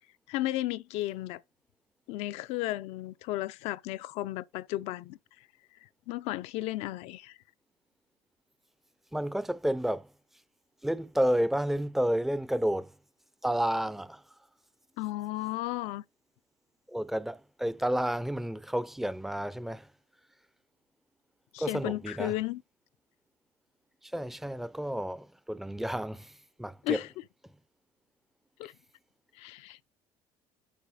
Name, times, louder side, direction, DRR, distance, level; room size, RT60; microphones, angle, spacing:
voice 1, 0.3-1.4 2.1-5.2 6.1-7.3 15.0-16.0 21.5-22.6 26.8-27.1 28.6-28.7 29.4-29.8, left 16 dB, 75° left, 0.5 m, -34 dB
voice 2, 9.1-10.1 10.8-12.9 13.4-14.2 16.9-19.9 21.6-22.4 24.0-26.3 26.6-27.0, equal, ahead, 0.5 m, -31 dB
8.6 x 4.8 x 4.8 m
supercardioid pair, 95°, 11 cm